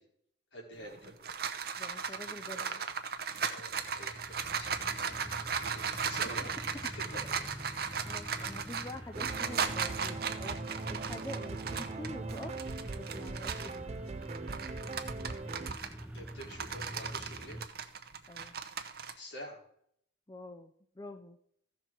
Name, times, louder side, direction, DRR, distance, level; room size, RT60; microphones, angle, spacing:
voice 1, 0.5-1.6 2.1-2.6 3.4-5.2 5.6-7.4 8.4-8.6 16.1-17.6 19.2-19.6, equal, 80° left, -2 dB, 3.9 m, -48 dB
sound 1, 0.8-13.8 14.2-19.1, right 6 dB, 55° right, 0.8 m, -37 dB
voice 2, 1.8-2.8 7.0-7.2 8.0-10.6 10.9-12.5 13.0-14.0 18.3-18.5 20.3-21.4, left 1 dB, 20° left, 7 dB, 0.5 m, -46 dB
sound 2, 3.6-17.6, equal, 5° right, 0.8 m, -46 dB
sound 3, 9.1-15.7, right 3 dB, 35° right, 0.4 m, -41 dB
15.0 x 6.1 x 4.5 m, 0.67 s
head